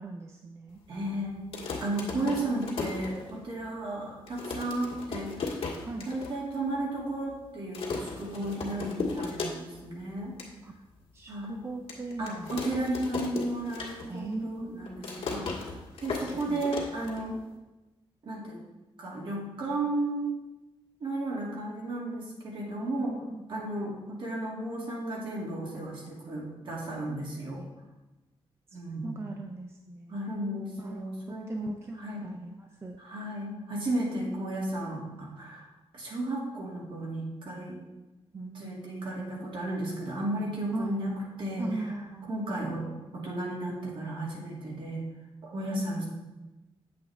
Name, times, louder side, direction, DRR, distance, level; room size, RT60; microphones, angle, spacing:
voice 1, 0.0-0.8 2.2-2.3 5.8-6.1 10.6-10.7 11.1-12.6 14.1-15.8 16.2-16.6 23.4-23.7 27.5-27.7 28.7-30.2 30.8-33.2 34.0-34.5 38.3-39.5 40.7-41.0 41.6-42.3 45.6-46.0, right 2 dB, 25° right, 3 dB, 0.4 m, -40 dB
voice 2, 0.9-1.5 1.8-5.6 6.0-10.3 11.3-11.6 12.2-15.5 16.0-17.4 18.2-18.6 19.0-20.4 21.0-23.2 23.5-27.7 28.7-29.2 30.1-32.2 33.0-35.7 35.9-37.8 38.5-41.7 42.3-42.8 43.1-45.0 45.4-46.1, right 1 dB, 55° right, -3 dB, 2.3 m, -34 dB
sound 1, 1.4-3.7 4.0-4.1 4.3-6.3 6.7-6.8 7.0-7.4 7.7-9.9 10.2-10.5 11.0-11.1 11.9-14.3 14.6-17.6, left 4 dB, 75° left, 1.8 m, -36 dB
8.1 x 7.8 x 3.4 m, 1.1 s
wide cardioid pair, 170°, 10 cm